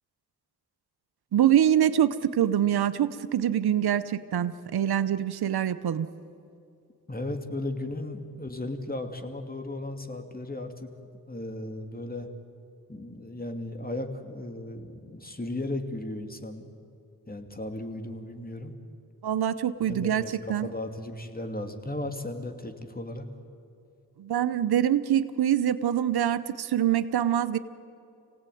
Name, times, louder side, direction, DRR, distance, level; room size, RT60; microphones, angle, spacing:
voice 1, 1.3-6.1 19.2-20.2 20.5-20.7 24.2-27.6, right 10 dB, 85° right, 14 dB, 0.9 m, -24 dB
voice 2, 7.1-10.9 11.3-12.3 12.9-16.7 17.3-18.7 19.8-23.3, left 1 dB, 25° left, 6 dB, 2.7 m, -36 dB
26.0 x 17.5 x 9.3 m, 2.5 s
cardioid pair, 40°, 37 cm